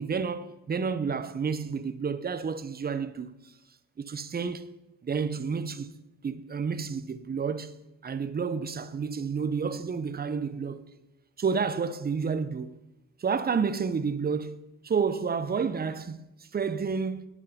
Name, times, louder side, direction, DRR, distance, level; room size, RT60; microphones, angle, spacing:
voice 1, 0.0-3.5 4.0-4.7 5.0-5.9 6.2-7.7 8.0-10.8 11.4-12.8 13.2-14.6 14.8-16.2 16.5-17.3, right 5 dB, 30° right, 0.8 m, -30 dB
9.3 x 8.5 x 5.1 m
cardioid pair, 90°, 30 cm